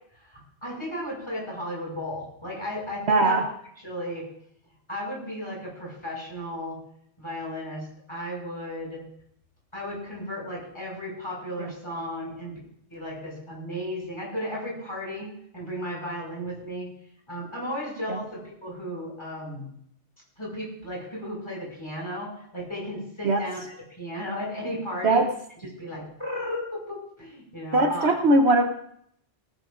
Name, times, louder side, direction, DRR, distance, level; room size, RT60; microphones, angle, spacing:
voice 1, 0.1-3.4 3.8-4.3 4.9-6.8 7.2-9.0 9.7-12.6 12.9-16.9 17.3-19.7 20.4-25.2 25.8-28.1, equal, 20° left, -4 dB, 6.0 m, -35 dB
voice 2, 3.1-3.5 11.6-11.7 18.1-18.2 23.2-23.4 25.0-25.3 27.7-28.7, right 2 dB, 60° right, 5 dB, 1.2 m, -20 dB
18.0 x 15.5 x 2.5 m, 0.71 s
omnidirectional pair, 1.3 m